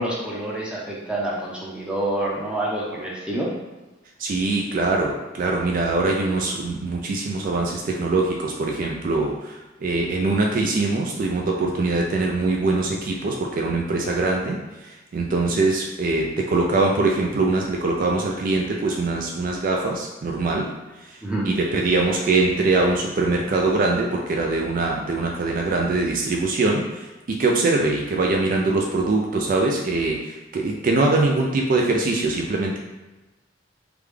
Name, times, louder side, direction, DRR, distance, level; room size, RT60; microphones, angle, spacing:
voice 1, 0.0-3.5 21.2-21.5, right 1 dB, 5° right, -4 dB, 0.6 m, -27 dB
voice 2, 4.2-20.7 21.0-32.8, right 3 dB, 45° right, 0 dB, 0.3 m, -23 dB
3.4 x 2.2 x 3.3 m, 1.1 s
head